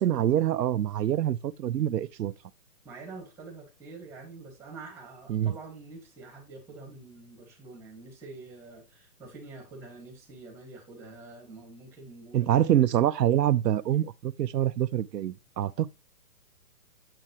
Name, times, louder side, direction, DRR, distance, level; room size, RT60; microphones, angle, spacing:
voice 1, 0.0-2.3 5.3-5.5 12.3-15.9, right 11 dB, 90° right, 0.7 m, -25 dB
voice 2, 2.8-12.5, right 3 dB, 5° right, 1.9 m, -46 dB
7.9 x 7.6 x 3.0 m
hypercardioid pair, 165°, 47 cm